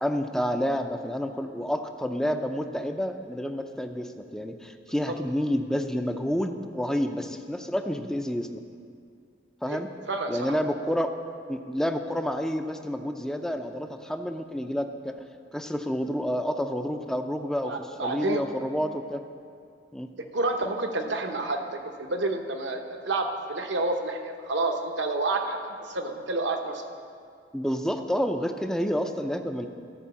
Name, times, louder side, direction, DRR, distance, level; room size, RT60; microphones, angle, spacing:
voice 1, 0.0-8.6 9.6-9.9 10.3-11.2 11.5-15.2 15.5-19.2 19.9-20.1 27.5-29.7, equal, 5° left, 6 dB, 0.5 m, -29 dB
voice 2, 10.1-10.5 17.6-18.4 20.3-26.8, right 2 dB, 70° right, 5 dB, 0.9 m, -29 dB
13.5 x 4.6 x 7.0 m, 2.3 s
head